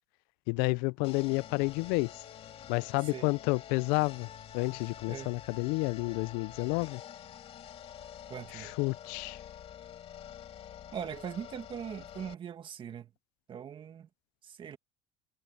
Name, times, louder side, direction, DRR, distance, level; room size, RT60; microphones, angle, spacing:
voice 1, 0.5-2.2 2.7-4.3 4.5-7.0 8.5-9.4, left 27 dB, 75° left, 0.4 m, -30 dB
sound 1, 1.0-12.3, left 9 dB, 40° left, 3.0 m, -48 dB
voice 2, 8.3-8.7 10.9-13.1 13.5-14.1 14.4-14.8, right 8 dB, 35° right, 2.0 m, -41 dB
cardioid pair, 135°, 15 cm